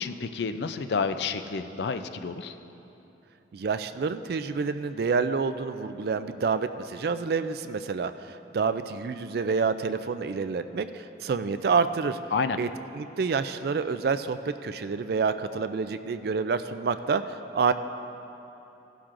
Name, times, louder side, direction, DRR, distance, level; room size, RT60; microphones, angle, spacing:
voice 1, 0.0-2.6 12.3-12.6, left 5 dB, 65° left, 10 dB, 0.4 m, -29 dB
voice 2, 3.5-12.2 12.6-12.7 12.9-17.7, right 5 dB, 55° right, 11 dB, 0.3 m, -28 dB
16.0 x 12.0 x 2.5 m, 3.0 s
head